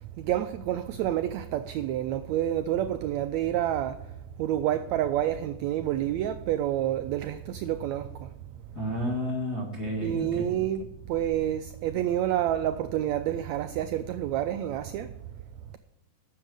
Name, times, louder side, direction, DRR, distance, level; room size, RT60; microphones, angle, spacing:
voice 1, 0.2-4.0 4.4-8.3 10.0-15.1, right 11 dB, 90° right, 1.5 m, -28 dB
voice 2, 8.7-10.5, equal, 35° left, 2.2 m, -31 dB
12.0 x 8.1 x 4.9 m
omnidirectional pair, 3.7 m